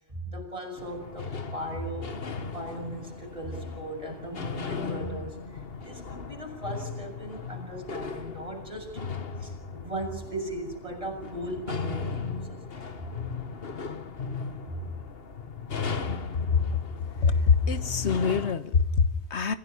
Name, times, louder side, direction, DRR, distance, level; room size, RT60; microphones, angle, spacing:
voice 1, 0.1-2.2 2.5-9.0 9.4-13.2 14.6-14.9, right 1 dB, 30° right, 1 dB, 7.1 m, -38 dB
sound 1, 0.8-18.6, left 5 dB, 60° left, 1.6 m, -37 dB
voice 2, 17.2-19.5, left 5 dB, 85° left, 12 dB, 1.6 m, -24 dB
26.5 x 16.0 x 9.9 m, 0.90 s
omnidirectional pair, 1.1 m